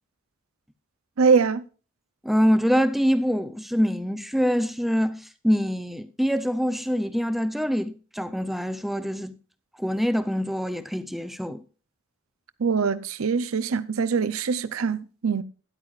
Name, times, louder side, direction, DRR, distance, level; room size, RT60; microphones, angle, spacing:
voice 1, 1.2-1.6 12.6-15.4, right 5 dB, 90° right, 0.6 m, -23 dB
voice 2, 2.2-9.4 9.8-11.6, equal, ahead, 0.5 m, -25 dB
13.0 x 10.5 x 2.5 m
head